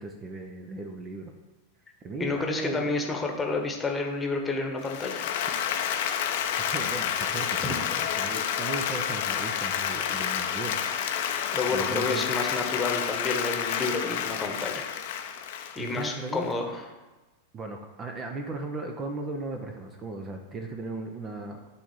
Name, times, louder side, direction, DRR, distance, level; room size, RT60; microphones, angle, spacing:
voice 1, 0.0-1.3 2.0-2.9 6.6-10.8 11.7-12.3 15.8-16.5 17.5-21.6, right 3 dB, 25° right, 4 dB, 0.9 m, -37 dB
voice 2, 2.2-5.3 7.6-7.7 11.5-14.8 15.7-16.8, left 3 dB, 15° left, 2 dB, 1.3 m, -30 dB
Applause, 4.8-16.5, left 8 dB, 50° left, 0.7 m, -29 dB
10.0 x 3.7 x 7.2 m, 1.2 s
figure-of-eight pair, 90°, 0 cm